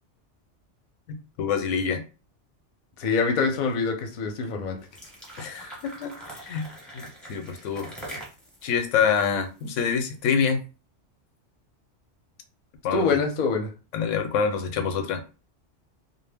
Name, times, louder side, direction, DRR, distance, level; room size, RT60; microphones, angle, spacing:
voice 1, 1.1-2.0 5.4-7.9 8.6-10.6 12.8-13.1 13.9-15.2, left 6 dB, 90° left, 7 dB, 0.9 m, -26 dB
voice 2, 3.0-4.8 12.9-13.7, left 4 dB, 50° left, 3 dB, 0.6 m, -25 dB
sound 1, 4.8-10.1, right 1 dB, ahead, 0.7 m, -43 dB
2.2 x 2.0 x 3.3 m, 0.33 s
omnidirectional pair, 1.2 m